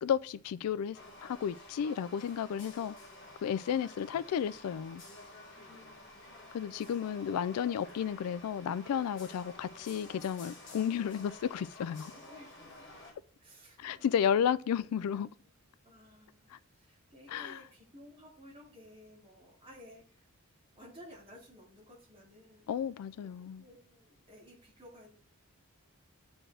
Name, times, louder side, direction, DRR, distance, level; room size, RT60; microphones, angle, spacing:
voice 1, 0.0-3.0 3.4-5.0 6.5-12.1 13.8-15.3 16.5-16.6 17.3-17.6 22.7-23.6, left 8 dB, 80° left, 0.3 m, -33 dB
sound 1, 0.9-13.1, left 2 dB, 55° left, 1.5 m, -51 dB
voice 2, 5.5-6.1 12.1-13.0 13.4-15.2 15.8-16.5 16.7-20.3 20.7-22.7 23.2-23.3 23.6-25.1, equal, 25° right, 2.6 m, -55 dB
8.8 x 4.4 x 3.3 m
head